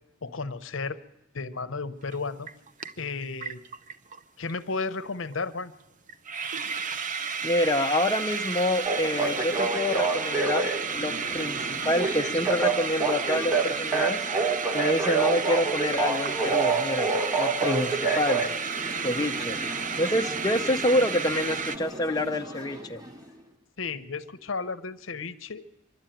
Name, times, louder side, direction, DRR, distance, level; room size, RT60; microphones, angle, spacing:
voice 1, 0.2-1.0 1.3-2.5 3.0-3.6 4.4-5.7 23.8-25.6, left 4 dB, 70° left, 12 dB, 0.9 m, -33 dB
sound 1, 2.1-2.2 2.5-4.2 4.5-4.6 4.8-5.1 5.3-5.4 5.8-5.9 6.1-21.8, right 6 dB, 40° right, 0.7 m, -32 dB
voice 2, 7.4-10.7 11.0-14.2 14.7-17.1 17.4-18.5 19.0-19.6 20.0-23.0, left 1 dB, 20° left, 4 dB, 0.7 m, -27 dB
sound 2, 8.8-23.2, right 4 dB, 20° right, 2.3 m, -29 dB
25.0 x 12.0 x 9.1 m, 0.97 s
head